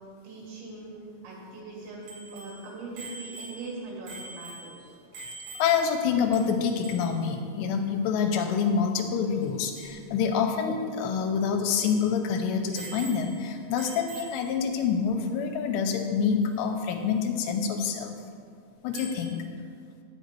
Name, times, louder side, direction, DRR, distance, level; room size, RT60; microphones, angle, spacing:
voice 1, 0.2-1.0 1.2-4.9, right 3 dB, 80° right, -3 dB, 4.6 m, -41 dB
Bicycle bell, 2.1-6.0 6.3-6.4 6.7-7.2 9.4-9.5 9.8-10.0 10.5-10.6 11.0-11.1 11.7-12.1 12.7-13.5 13.8-14.6 16.4-16.5 18.9-19.3, right 2 dB, 60° right, 1.5 m, -44 dB
voice 2, 5.6-18.2 18.8-19.4, left 6 dB, 85° left, 4 dB, 2.8 m, -27 dB
9.2 x 8.0 x 4.5 m, 2.2 s
omnidirectional pair, 5.1 m